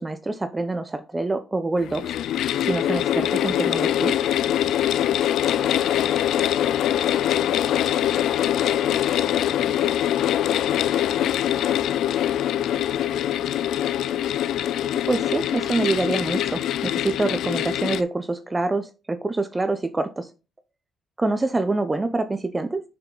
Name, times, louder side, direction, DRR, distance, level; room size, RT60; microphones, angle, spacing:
voice 1, 0.0-2.2 2.6-4.2 15.0-20.3 21.2-22.8, right 2 dB, 20° right, 10 dB, 0.7 m, -26 dB
sound 1, 1.8-18.0, left 11 dB, 80° left, 0.4 m, -23 dB
voice 2, 8.4-8.8, left 4 dB, 45° left, -1 dB, 3.1 m, -44 dB
6.7 x 5.9 x 3.9 m, 0.31 s
cardioid pair, 90°, 0 cm